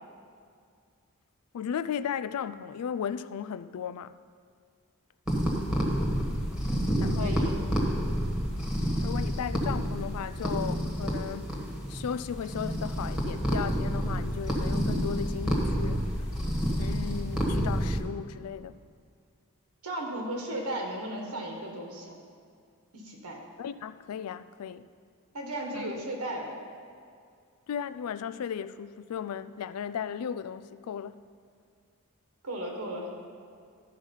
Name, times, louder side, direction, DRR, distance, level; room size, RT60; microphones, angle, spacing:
voice 1, 1.5-4.2 7.0-7.4 9.0-11.5 11.9-16.3 16.8-18.8 23.6-24.9 25.7-25.9 27.7-31.2, left 8 dB, 70° left, 0.3 m, -36 dB
sound 1, 5.3-18.0, equal, 5° right, 1.4 m, -29 dB
voice 2, 7.2-7.5 19.8-22.2 22.9-23.4 25.3-26.5 32.4-33.1, right 1 dB, 80° right, 1.6 m, -35 dB
12.5 x 4.9 x 5.5 m
head